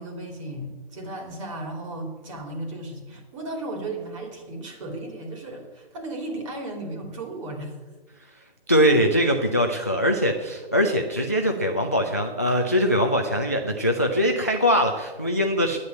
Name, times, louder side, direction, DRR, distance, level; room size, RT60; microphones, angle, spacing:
voice 1, 0.0-7.9, right 2 dB, 30° right, 3 dB, 2.8 m, -35 dB
voice 2, 8.7-15.8, equal, 15° left, 4 dB, 0.3 m, -22 dB
9.6 x 7.9 x 9.3 m, 1.3 s
figure-of-eight pair, 150°, 30 cm